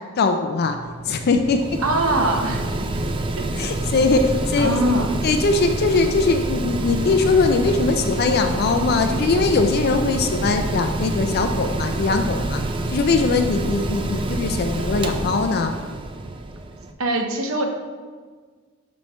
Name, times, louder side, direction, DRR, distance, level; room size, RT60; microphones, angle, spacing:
voice 1, 0.2-0.8 1.1-1.6 3.6-4.9 5.2-12.6 12.9-15.7, left 4 dB, 50° left, 6 dB, 0.4 m, -21 dB
Mechanical fan, 0.6-16.9, right 2 dB, 25° right, 0.4 m, -27 dB
voice 2, 1.8-2.8 3.4-3.7 4.6-5.1 17.0-17.6, right 1 dB, 85° right, 3 dB, 0.9 m, -22 dB
7.1 x 3.2 x 5.5 m, 1.5 s
head